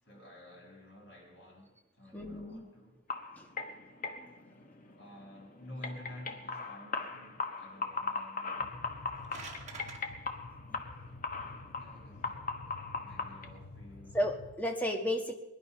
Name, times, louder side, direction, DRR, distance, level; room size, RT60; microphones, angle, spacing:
voice 1, 0.0-3.0 5.0-8.8 11.8-12.6 13.0-14.2, left 1 dB, 55° left, 6.1 m, -51 dB
voice 2, 2.1-2.6 3.4-3.5 4.2-4.3 10.7-10.9 14.1-15.3, equal, 10° left, 1.4 m, -33 dB
sound 1, 3.1-13.5, left 4 dB, 40° left, 1.4 m, -40 dB
sound 2, 8.6-14.6, left 3 dB, 85° left, 1.0 m, -50 dB
sound 3, 8.9-10.0, right 4 dB, 35° right, 1.9 m, -46 dB
22.0 x 11.0 x 5.8 m
head